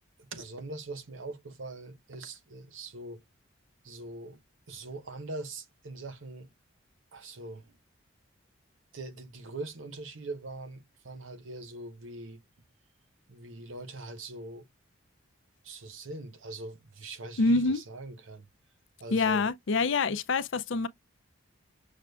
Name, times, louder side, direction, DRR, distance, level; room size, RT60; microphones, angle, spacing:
voice 1, 0.2-3.2 3.8-4.4 4.7-6.5 7.1-7.8 8.9-12.4 13.3-14.7 15.6-18.5 19.0-19.5, right 2 dB, 70° right, 0.9 m, -42 dB
voice 2, 17.4-17.8 19.1-20.9, left 3 dB, 65° left, 0.5 m, -26 dB
6.4 x 2.4 x 2.2 m
head